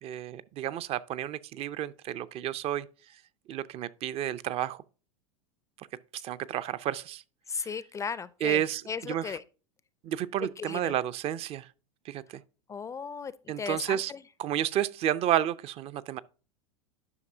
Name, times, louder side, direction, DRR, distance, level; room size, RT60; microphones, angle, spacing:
voice 1, 0.0-2.9 3.5-4.8 6.2-7.2 8.4-9.4 10.0-11.7 12.1-12.2 13.5-14.1 14.4-16.2, right 11 dB, 35° right, 0.5 m, -31 dB
voice 2, 7.5-9.4 10.6-10.9 12.7-13.3 13.6-14.2, left 6 dB, 20° left, 0.4 m, -36 dB
11.0 x 5.9 x 2.7 m
hypercardioid pair, 90°, 17 cm